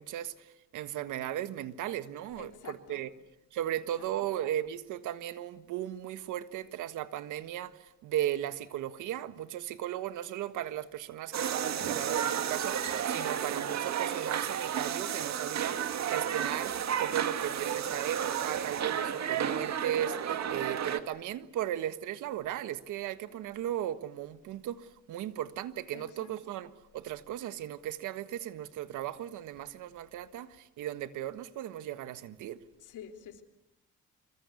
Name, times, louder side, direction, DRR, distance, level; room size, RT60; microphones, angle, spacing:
voice 1, 0.0-3.1 3.5-32.6, right 12 dB, 90° right, 1.5 m, -36 dB
voice 2, 2.4-3.0 4.0-4.1 25.9-26.5 32.8-33.4, left 8 dB, 80° left, 3.6 m, -48 dB
sound 1, 11.3-21.0, right 8 dB, 65° right, 2.1 m, -32 dB
26.5 x 25.0 x 8.3 m
cardioid pair, 90°, 30 cm